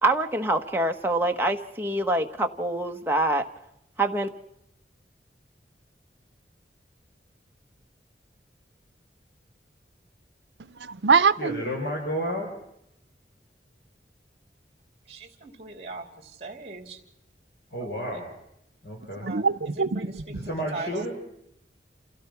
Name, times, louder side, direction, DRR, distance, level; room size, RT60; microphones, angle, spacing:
voice 1, 0.0-3.4 4.0-4.3, right 2 dB, 10° right, 3 dB, 1.3 m, -25 dB
voice 2, 10.6-11.6 19.2-20.0, right 5 dB, 80° right, 17 dB, 0.7 m, -23 dB
voice 3, 11.4-12.5 17.7-18.3 18.8-19.3 20.3-21.1, equal, 70° left, -1 dB, 4.1 m, -31 dB
voice 4, 15.0-17.0 17.8-18.2 19.2-21.1, right 3 dB, 35° right, 3 dB, 3.0 m, -40 dB
29.0 x 16.0 x 6.0 m, 0.80 s
head